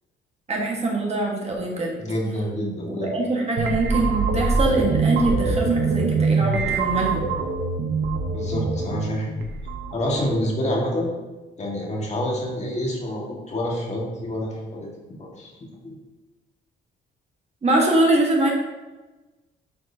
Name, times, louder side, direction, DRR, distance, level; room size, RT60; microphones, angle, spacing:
voice 1, 0.5-2.0 2.9-7.3 17.6-18.5, right 2 dB, 35° right, -2 dB, 1.5 m, -23 dB
voice 2, 2.0-3.1 8.3-9.3 9.9-11.1 11.6-14.9 15.2-15.5 15.8-16.0, equal, 35° left, -3 dB, 1.9 m, -27 dB
sound 1, 3.6-10.5, right 4 dB, 65° right, 0.9 m, -24 dB
8.4 x 4.6 x 2.8 m, 1.2 s
cardioid pair, 90°, 20 cm